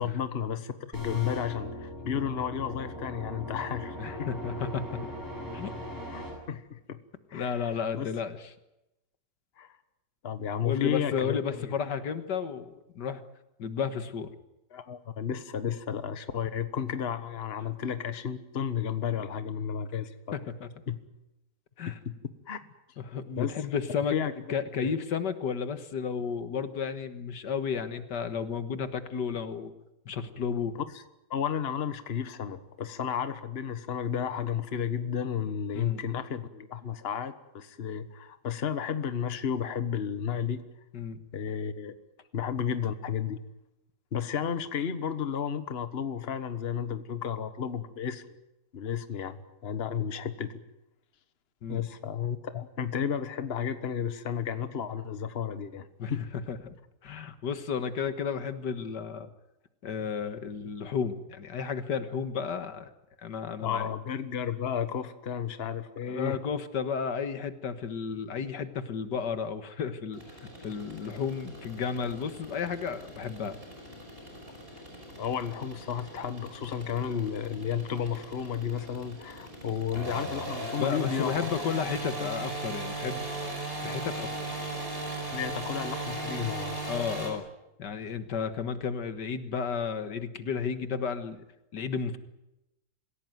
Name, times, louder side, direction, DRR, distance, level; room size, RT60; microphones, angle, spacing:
voice 1, 0.0-4.3 6.1-7.0 7.3-8.1 9.6-9.7 10.2-11.7 14.7-20.1 20.9-21.0 21.9-22.2 22.5-22.6 23.4-23.5 24.1-24.3 24.8-24.9 30.9-31.0 31.3-40.6 41.3-41.9 42.3-43.4 44.1-48.2 48.7-50.6 51.7-56.2 63.6-66.4 75.2-81.5 82.2-82.3 85.3-86.8, left 8 dB, 40° left, 11 dB, 1.4 m, -32 dB
sound 1, 0.9-6.3, left 1 dB, 10° right, 7.9 m, -39 dB
voice 2, 4.0-5.1 5.5-5.7 7.3-8.4 10.6-13.2 13.6-14.3 20.3-20.7 21.8-22.0 23.0-24.1 24.5-29.7 30.1-30.8 35.7-36.0 40.9-41.2 51.6-51.8 56.0-56.1 56.5-56.7 57.0-59.3 59.8-62.9 63.2-63.9 66.1-70.4 70.6-73.6 80.8-84.6 86.9-87.4 87.8-91.4 91.7-92.2, left 6 dB, 80° left, 10 dB, 2.1 m, -33 dB
sound 2, 70.1-87.3, right 2 dB, 30° right, 5.9 m, -38 dB
26.5 x 16.5 x 9.4 m, 0.92 s
omnidirectional pair, 1.8 m